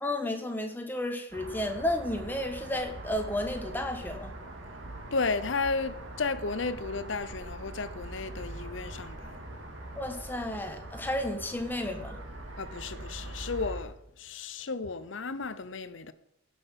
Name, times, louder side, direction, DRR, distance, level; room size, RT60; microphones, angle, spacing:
voice 1, 0.0-4.3 10.0-12.2, left 1 dB, 10° left, 1.3 m, -32 dB
sound 1, 1.3-13.8, right 1 dB, 70° right, 2.1 m, -42 dB
voice 2, 5.1-9.4 12.6-16.1, left 4 dB, 65° left, 0.7 m, -33 dB
16.5 x 6.2 x 5.5 m
head